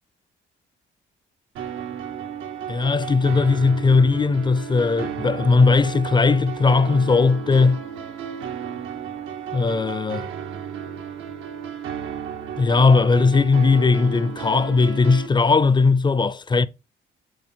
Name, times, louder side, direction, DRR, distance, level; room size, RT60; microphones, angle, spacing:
sound 1, 1.6-15.3, right 8 dB, 80° right, 1.1 m, -34 dB
voice 1, 2.7-7.8 9.5-10.3 12.6-16.7, left 4 dB, 25° left, 0.5 m, -18 dB
8.0 x 3.8 x 4.3 m
cardioid pair, 90°, 20 cm